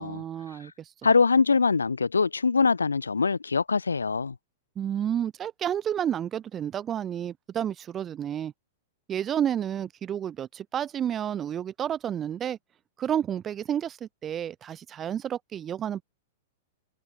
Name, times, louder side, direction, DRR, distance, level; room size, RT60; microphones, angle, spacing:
voice 1, 0.0-0.9 4.8-8.5 9.1-12.6 13.0-16.0, right 9 dB, 20° right, 3.6 m, -30 dB
voice 2, 1.0-4.3, left 4 dB, 75° left, 1.5 m, -23 dB
figure-of-eight pair, 100°, 0 cm